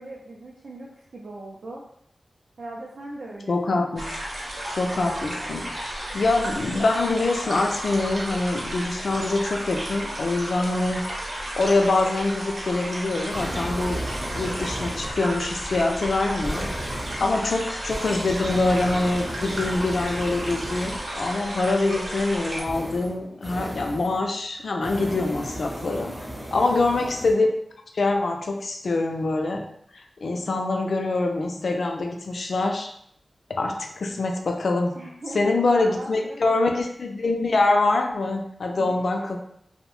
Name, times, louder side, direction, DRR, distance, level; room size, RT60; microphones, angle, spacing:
voice 1, 0.0-1.8 2.6-3.9 17.2-17.5 26.5-26.8 34.9-36.7 38.8-39.4, right 2 dB, 80° right, -4 dB, 0.4 m, -40 dB
voice 2, 3.5-4.1 4.7-11.1 11.6-14.0 14.3-16.7 17.2-26.1 26.5-27.5 27.9-29.7 29.9-32.9 33.5-35.0 35.3-39.4, left 2 dB, 70° left, 3 dB, 0.4 m, -24 dB
sound 1, 4.0-22.6, right 1 dB, 65° right, 0.8 m, -33 dB
sound 2, 13.3-21.2 22.6-24.2 24.7-27.3, equal, 20° right, 0.6 m, -35 dB
2.6 x 2.0 x 3.0 m, 0.70 s
wide cardioid pair, 105°, 0 cm